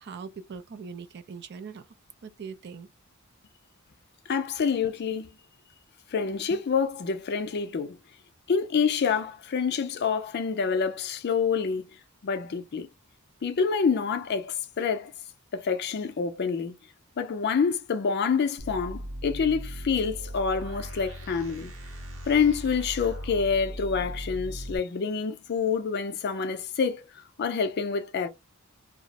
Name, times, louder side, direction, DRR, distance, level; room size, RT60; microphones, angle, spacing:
voice 1, 0.0-1.9 2.2-2.9, right 5 dB, 50° right, 0.4 m, -41 dB
voice 2, 4.3-5.3 6.1-8.0 8.5-11.9 12.2-12.9 13.4-15.1 15.5-16.7 17.2-21.7 22.3-28.3, left 5 dB, 50° left, 0.4 m, -27 dB
sound 1, 18.6-24.8, equal, 70° right, 0.7 m, -38 dB
2.3 x 2.0 x 2.8 m
head